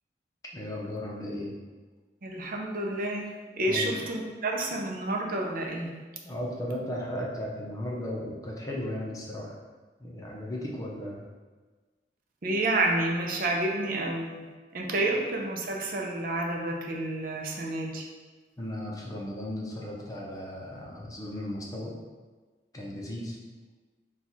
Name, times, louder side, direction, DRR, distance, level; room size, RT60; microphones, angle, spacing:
voice 1, 0.5-1.6 3.7-4.0 6.2-9.6 10.0-11.3 15.1-15.2 18.6-21.9 22.7-23.4, left 1 dB, 20° left, -3 dB, 0.6 m, -36 dB
voice 2, 2.2-3.3 3.6-5.9 12.4-14.5 14.7-18.0, right 2 dB, 50° right, 0 dB, 0.6 m, -29 dB
4.5 x 2.3 x 4.0 m, 1.3 s
head